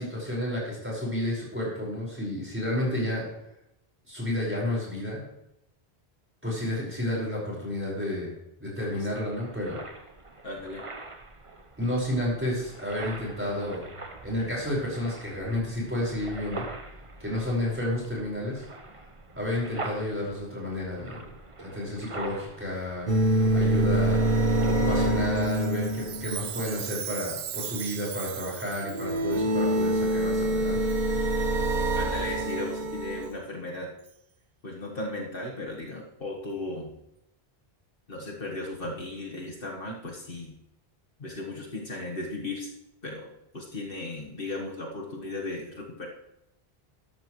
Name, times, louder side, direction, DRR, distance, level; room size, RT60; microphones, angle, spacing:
voice 1, 0.0-3.2 4.1-5.2 6.4-8.3 8.6-9.8 11.8-13.8 14.2-16.6 17.2-18.6 19.4-21.2 21.6-23.1 23.5-24.2 24.6-30.8, left 1 dB, 10° right, -5 dB, 5.3 m, -31 dB
sound 1, 8.8-24.9, right 2 dB, 30° right, 1.1 m, -44 dB
voice 2, 10.4-10.9 32.0-33.9 34.6-36.9 38.1-40.5 41.2-42.7 43.0-46.1, left 2 dB, 60° left, -2 dB, 1.8 m, -36 dB
sound 2, 23.1-26.6 28.9-33.3, right 1 dB, 50° right, 1.3 m, -25 dB
Chime, 25.4-29.4 30.1-30.2 30.9-31.1 31.6-31.8 32.5-32.6 33.2-33.3 34.1-34.2, right 11 dB, 75° right, 0.8 m, -38 dB
13.0 x 12.5 x 3.2 m, 0.82 s
omnidirectional pair, 1.1 m